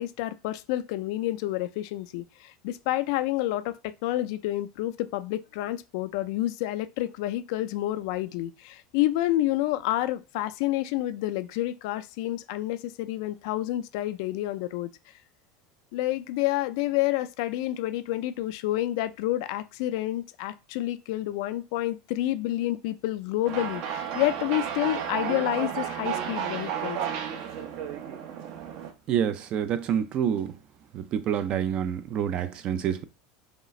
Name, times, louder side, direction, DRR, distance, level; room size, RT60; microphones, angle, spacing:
voice 1, 0.0-14.9 15.9-27.0, left 15 dB, 70° left, 0.4 m, -29 dB
sound 1, 23.4-28.9, right 8 dB, 65° right, 0.8 m, -32 dB
voice 2, 29.1-30.5 30.9-33.0, right 9 dB, 40° right, 0.4 m, -27 dB
5.0 x 2.4 x 3.1 m
supercardioid pair, 135°, 3 cm